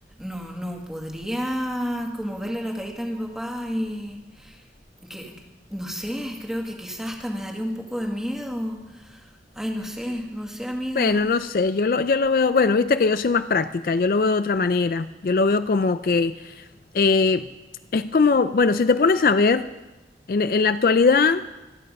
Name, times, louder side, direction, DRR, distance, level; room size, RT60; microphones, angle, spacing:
voice 1, 0.2-4.6 5.0-5.3 5.7-11.3, equal, 5° right, 1 dB, 1.8 m, -31 dB
voice 2, 11.0-16.3 16.9-17.5 17.9-19.7 20.3-21.4, left 4 dB, 55° left, 12 dB, 0.4 m, -20 dB
25.0 x 9.2 x 5.3 m, 1.1 s
head